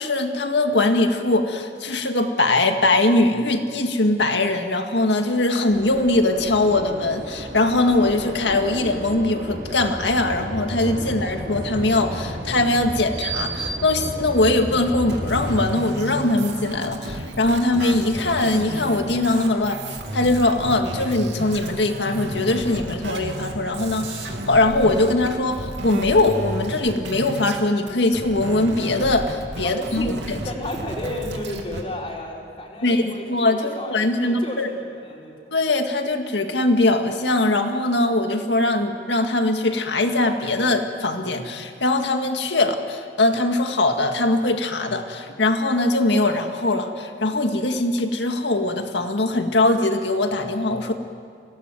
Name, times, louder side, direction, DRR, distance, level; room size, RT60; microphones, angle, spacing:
voice 1, 0.0-30.4 32.8-34.7 35.5-50.9, left 2 dB, 80° left, 5 dB, 1.9 m, -21 dB
sound 1, 5.7-15.6, right 1 dB, 65° right, 6.3 m, -32 dB
sound 2, 15.1-27.6 27.9-31.8, right 1 dB, 85° right, 2.7 m, -32 dB
voice 2, 29.6-30.1 30.4-35.5, left 1 dB, 30° left, -2 dB, 4.7 m, -33 dB
25.5 x 18.5 x 9.2 m, 2.3 s
head